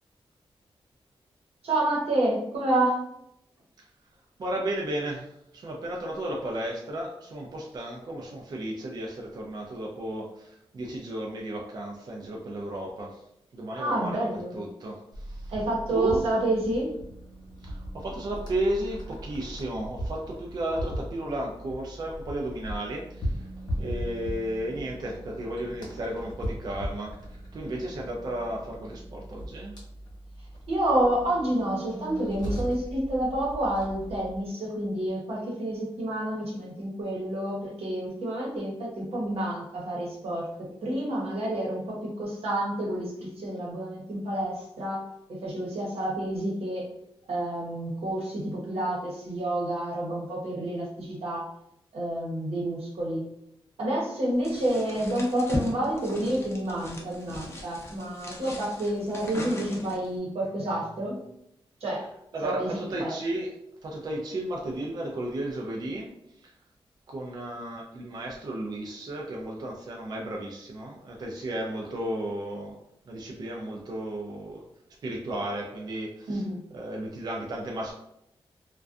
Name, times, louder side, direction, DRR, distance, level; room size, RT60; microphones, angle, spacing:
voice 1, 1.6-3.0 13.8-14.6 15.5-16.9 30.7-45.0 45.3-46.9 47.3-51.5 51.9-53.3 53.8-61.2 61.8-62.0 62.4-63.1 76.3-76.6, right 1 dB, 85° right, -4 dB, 0.9 m, -29 dB
voice 2, 4.4-13.2 13.5-15.6 15.9-16.4 17.6-23.5 23.8-29.8 62.0-63.5 63.8-66.1 66.4-66.5 67.1-72.8 73.1-74.6 75.0-77.9, right 1 dB, 45° right, -1 dB, 0.4 m, -34 dB
sound 1, 15.1-34.4, equal, 45° left, 1.0 m, -38 dB
sound 2, 54.4-60.2, left 1 dB, 25° left, 0.5 m, -39 dB
2.5 x 2.2 x 2.3 m, 0.79 s
wide cardioid pair, 160°, 10 cm